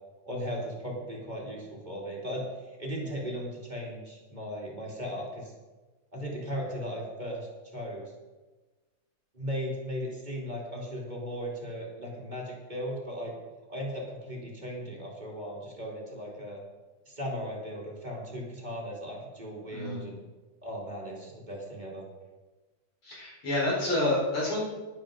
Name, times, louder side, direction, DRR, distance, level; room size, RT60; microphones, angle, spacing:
voice 1, 0.2-5.5 6.1-8.1 9.3-13.3 13.7-16.6 17.1-20.2 20.6-22.1, equal, 20° right, -3 dB, 2.7 m, -37 dB
voice 2, 23.0-24.6, left 1 dB, 90° left, -5 dB, 5.5 m, -28 dB
11.5 x 11.0 x 5.0 m, 1.2 s
omnidirectional pair, 2.3 m